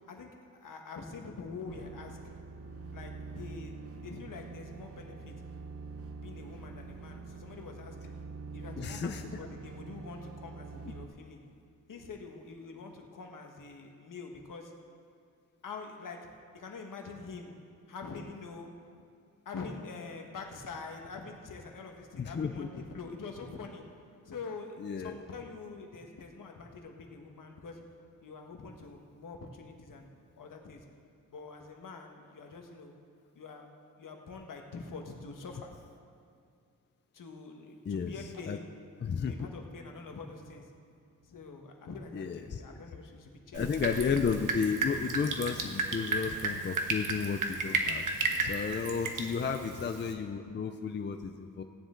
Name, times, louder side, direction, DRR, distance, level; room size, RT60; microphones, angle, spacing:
voice 1, 0.6-2.2 2.9-5.3 6.2-8.0 8.5-11.4 11.9-14.7 15.6-16.2 16.5-17.5 17.9-18.7 19.4-23.8 24.2-27.8 28.2-30.8 31.3-32.9 33.3-33.7 34.0-35.7 37.1-38.7 39.2-40.7 41.2-43.7 49.0-49.3, left 4 dB, 65° left, 2 dB, 1.4 m, -45 dB
sound 1, 1.7-11.1, right 4 dB, 45° right, 0.8 m, -45 dB
voice 2, 8.8-9.2 22.2-22.7 24.8-25.2 37.9-38.1 38.5-38.6 39.0-39.3 42.1-42.6 43.5-48.0 48.4-51.6, left 6 dB, 35° left, 6 dB, 0.5 m, -33 dB
Drip, 43.5-50.1, right 3 dB, 65° right, 1.2 m, -34 dB
17.0 x 9.8 x 3.8 m, 2.3 s
wide cardioid pair, 130°, 34 cm